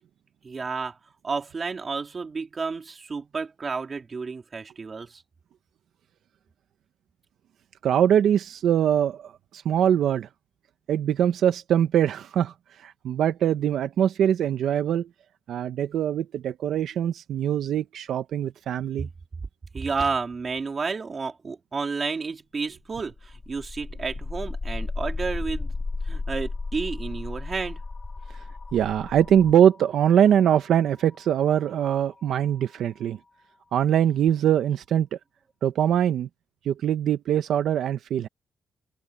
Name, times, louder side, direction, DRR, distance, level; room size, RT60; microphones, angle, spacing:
voice 1, 0.4-1.0 1.2-5.2 19.7-25.7 26.0-27.8, right 4 dB, 30° right, 3.4 m, -31 dB
voice 2, 7.8-10.3 10.9-12.5 12.8-15.1 15.5-19.1 28.7-33.2 33.7-35.2 35.6-36.3 36.6-38.3, right 9 dB, 80° right, 0.8 m, -22 dB
sound 1, 23.0-32.9, left 3 dB, 25° left, 2.8 m, -35 dB
wide cardioid pair, 160°, 0 cm